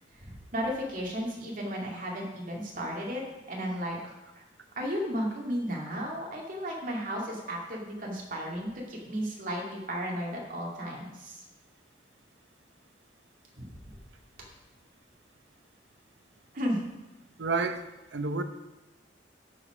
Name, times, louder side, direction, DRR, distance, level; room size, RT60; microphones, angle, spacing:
voice 1, 0.2-3.2 3.5-4.4 4.8-11.4 13.6-13.7 16.5-16.8, equal, 50° right, -2 dB, 2.4 m, -34 dB
voice 2, 17.4-17.8 18.1-18.4, right 3 dB, 70° right, 8 dB, 0.8 m, -29 dB
12.5 x 5.1 x 5.0 m, 1.0 s
head